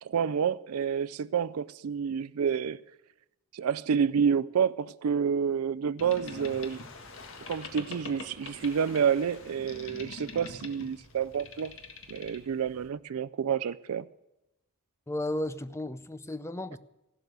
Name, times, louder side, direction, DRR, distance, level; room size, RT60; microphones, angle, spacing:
voice 1, 0.0-2.8 3.5-6.8 7.5-11.7 12.1-14.0, right 7 dB, 85° right, 0.4 m, -29 dB
Boat Water vehicle, 6.0-12.9, left 3 dB, 65° left, 1.8 m, -45 dB
voice 2, 15.1-16.8, left 1 dB, 15° left, 0.5 m, -34 dB
15.0 x 12.0 x 6.6 m
head